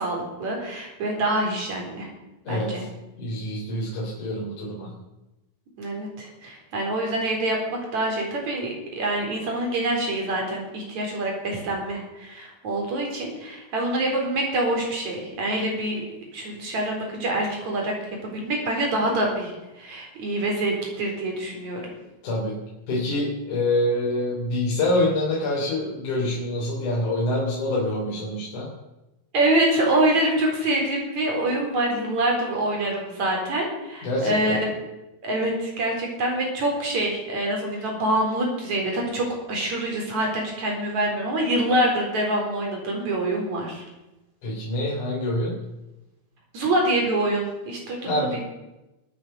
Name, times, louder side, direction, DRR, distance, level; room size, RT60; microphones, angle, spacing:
voice 1, 0.0-2.1 2.5-2.9 5.8-16.0 16.3-17.9 18.2-21.8 29.3-34.7 35.2-43.8 46.5-48.4, right 1 dB, 50° right, 0 dB, 5.4 m, -25 dB
voice 2, 2.4-2.8 3.2-5.0 22.2-22.6 22.9-28.7 34.0-34.6 44.4-45.6 48.0-48.4, left 1 dB, 55° left, -5 dB, 4.9 m, -26 dB
23.5 x 8.7 x 6.9 m, 0.99 s
omnidirectional pair, 4.1 m